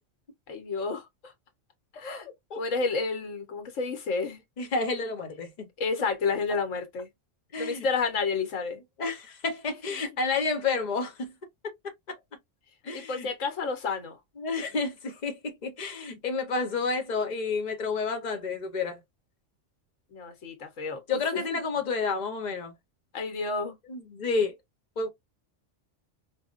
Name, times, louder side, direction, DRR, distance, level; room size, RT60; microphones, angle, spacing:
voice 1, 0.5-1.3 1.9-2.3 2.6-4.4 5.8-7.1 7.6-8.8 12.9-14.2 20.1-21.6 23.1-23.8, left 4 dB, 85° left, 1.3 m, -30 dB
voice 2, 4.6-5.7 7.5-7.9 9.0-11.4 11.6-11.7 12.1-12.2 12.8-13.3 14.4-19.0 21.1-22.7 23.9-24.6 25.0-25.1, left 4 dB, 40° left, 0.9 m, -30 dB
4.7 x 2.3 x 2.4 m
omnidirectional pair, 1.3 m